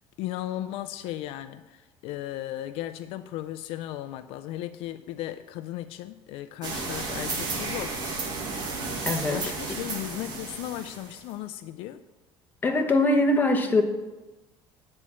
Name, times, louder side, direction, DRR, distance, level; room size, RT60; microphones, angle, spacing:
voice 1, 0.2-8.0 9.3-12.0, left 13 dB, 70° left, 0.4 m, -36 dB
sound 1, 6.6-11.3, right 3 dB, 45° right, 1.8 m, -33 dB
voice 2, 9.1-9.4 12.6-13.8, left 2 dB, 20° left, 0.9 m, -22 dB
10.0 x 4.3 x 7.3 m
cardioid pair, 145°, 10 cm